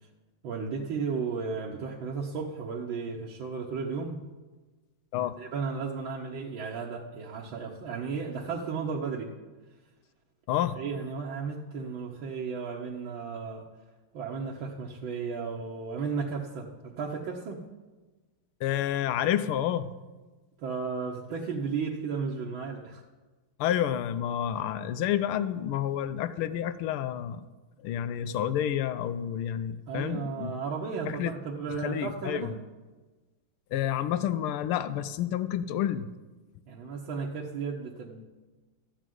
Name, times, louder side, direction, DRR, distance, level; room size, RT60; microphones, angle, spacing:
voice 1, 0.4-4.2 5.4-9.3 10.8-13.7 14.1-17.6 20.6-23.0 29.9-32.6 36.7-38.2, right 5 dB, 70° right, -2 dB, 1.8 m, -34 dB
voice 2, 18.6-19.9 23.6-27.5 27.8-30.5 31.1-31.3 31.8-32.5 33.7-36.1, left 10 dB, 90° left, 13 dB, 1.5 m, -29 dB
13.5 x 5.0 x 9.2 m, 1.2 s
omnidirectional pair, 2.3 m